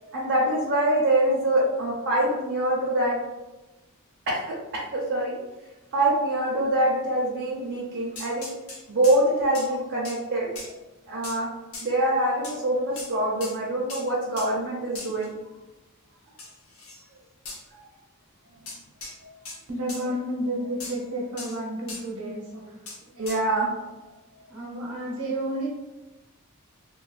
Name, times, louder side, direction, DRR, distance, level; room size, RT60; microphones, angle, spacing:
voice 1, 0.0-3.2 4.3-5.4 5.9-8.5 8.9-10.7 11.1-11.5 11.8-15.3 19.2-19.3 23.2-23.8, right 1 dB, 50° right, -5 dB, 0.5 m, -25 dB
sound 1, 8.2-9.2 9.5-9.7 10.0-10.2 10.6-10.7 11.2-11.4 11.7-11.9 12.4-12.6 13.0-13.1 13.4-13.6 13.9-14.1 14.4-14.5 15.0-15.3 16.4-17.0 17.5-17.6 18.7-19.2 19.5-19.6 19.9-20.0 20.8-21.0 21.4-21.6 21.9-22.1 22.9-23.0 23.3-23.4, left 3 dB, 70° left, 0.7 m, -38 dB
voice 2, 19.7-22.8 23.1-23.5 24.5-25.7, right 1 dB, 80° right, -2 dB, 0.8 m, -31 dB
3.1 x 2.2 x 2.4 m, 1.1 s
head